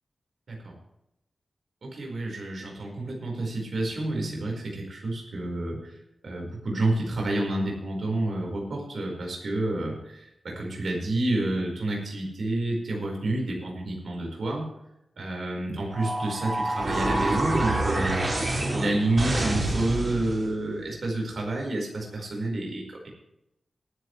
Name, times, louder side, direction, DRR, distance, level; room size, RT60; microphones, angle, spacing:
voice 1, 1.8-5.8 6.2-14.7 15.2-23.1, right 2 dB, 70° right, -1 dB, 4.9 m, -29 dB
sound 1, 15.9-20.5, right 1 dB, 40° right, 5.1 m, -27 dB
20.0 x 11.0 x 3.3 m, 0.86 s
wide cardioid pair, 100°, 0 cm